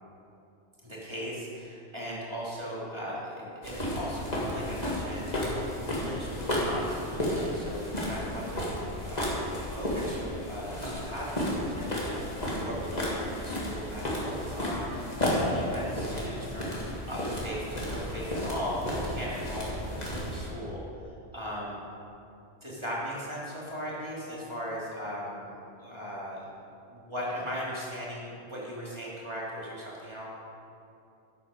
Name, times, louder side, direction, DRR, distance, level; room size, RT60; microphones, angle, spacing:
voice 1, 0.8-5.6 5.9-8.7 8.9-16.8 17.1-21.8 22.6-25.5 25.8-26.5 26.9-30.3, equal, 25° right, -6 dB, 2.4 m, -38 dB
sound 1, 3.6-20.5, left 1 dB, 35° left, 2.1 m, -32 dB
12.0 x 8.4 x 4.9 m, 2.7 s
omnidirectional pair, 1.1 m